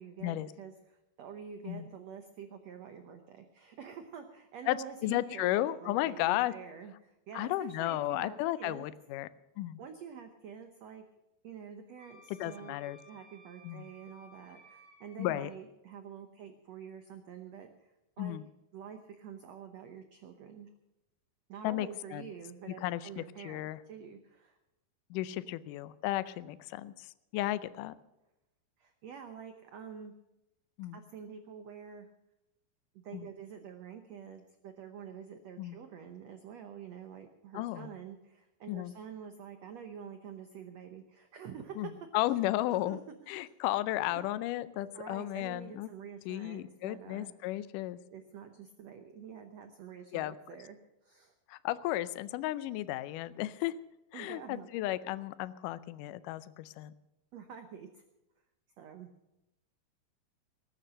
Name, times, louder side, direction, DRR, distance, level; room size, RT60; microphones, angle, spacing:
voice 1, 0.0-8.9 9.8-11.0 11.4-12.8 13.0-18.4 18.7-20.7 21.5-24.6 28.8-30.1 30.9-32.1 32.9-41.9 42.8-43.5 44.0-44.2 44.9-47.3 48.1-50.8 51.0-51.3 54.1-54.7 57.3-58.0 58.8-59.1, right 7 dB, 80° right, 6 dB, 1.5 m, -47 dB
voice 2, 5.0-6.5 7.3-9.3 9.6-9.8 12.3-13.0 13.6-13.9 15.2-15.5 18.2-18.4 21.6-22.3 22.8-23.8 25.1-27.1 27.3-27.9 30.8-31.0 33.1-33.3 35.6-35.8 37.5-37.9 38.7-38.9 41.8-43.0 43.3-45.9 46.3-48.0 50.1-50.4 51.5-53.7 54.1-56.9, left 15 dB, 80° left, 15 dB, 1.9 m, -34 dB
Wind instrument woodwind instrument, 12.0-15.3, equal, 40° left, 8.2 m, -58 dB
19.5 x 9.3 x 6.4 m, 0.92 s
omnidirectional pair, 4.5 m